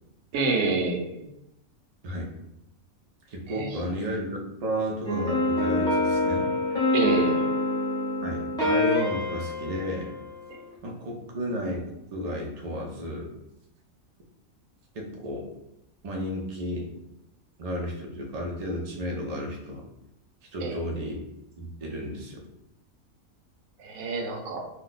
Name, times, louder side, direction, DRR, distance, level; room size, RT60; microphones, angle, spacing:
voice 1, 0.3-1.2 3.5-3.7 6.9-7.5 20.6-20.8 23.8-24.6, right 3 dB, 80° right, 1 dB, 1.1 m, -27 dB
voice 2, 3.3-4.3 4.6-6.5 8.2-10.1 10.8-13.3 14.9-15.5 16.0-16.9 17.6-19.8 20.5-21.2 21.6-22.4, equal, 60° right, 0 dB, 0.4 m, -33 dB
sound 1, 5.1-10.7, left 1 dB, 5° left, 0.5 m, -26 dB
2.7 x 2.2 x 3.9 m, 0.86 s
omnidirectional pair, 1.5 m